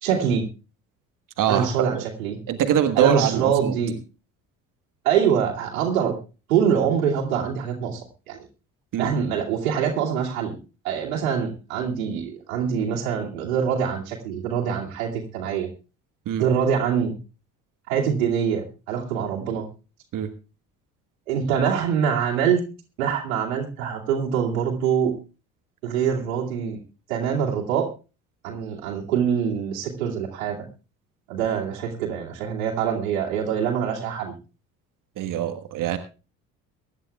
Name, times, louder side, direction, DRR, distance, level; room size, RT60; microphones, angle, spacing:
voice 1, 0.0-0.5 1.5-2.4 3.0-4.0 5.0-6.1 6.5-8.0 8.3-8.4 9.0-10.6 10.8-15.7 16.4-17.1 17.9-19.7 21.3-22.6 23.0-25.1 25.8-26.8 27.1-27.9 28.4-30.6 31.3-34.3, right 7 dB, 75° right, -3 dB, 2.6 m, -24 dB
voice 2, 1.4-2.0 2.5-3.7 8.9-9.1 16.3-16.4 20.1-20.3 35.2-36.0, right 10 dB, 50° right, 9 dB, 1.5 m, -23 dB
23.5 x 11.0 x 2.3 m, 0.33 s
figure-of-eight pair, 60°, 41 cm